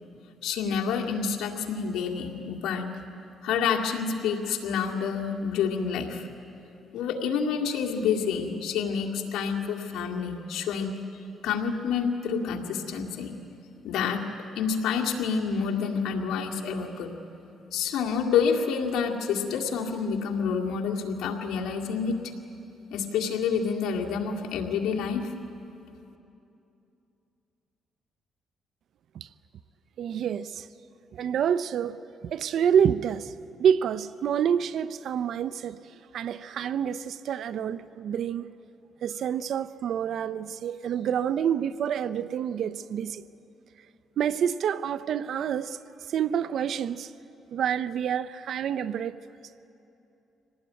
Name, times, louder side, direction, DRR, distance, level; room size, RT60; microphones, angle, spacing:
voice 1, 0.4-2.9 3.4-6.2 6.9-11.0 11.4-13.4 13.8-14.3 14.6-17.1 17.7-22.2 22.9-25.3, left 6 dB, 85° left, 2.1 m, -28 dB
voice 2, 30.0-30.7 31.1-32.0 32.2-33.3 33.6-35.8 36.1-38.5 39.0-43.2 44.2-45.8 46.1-47.1 47.5-49.2, right 8 dB, 70° right, 0.5 m, -27 dB
25.0 x 18.5 x 9.5 m
cardioid pair, 90°, 0 cm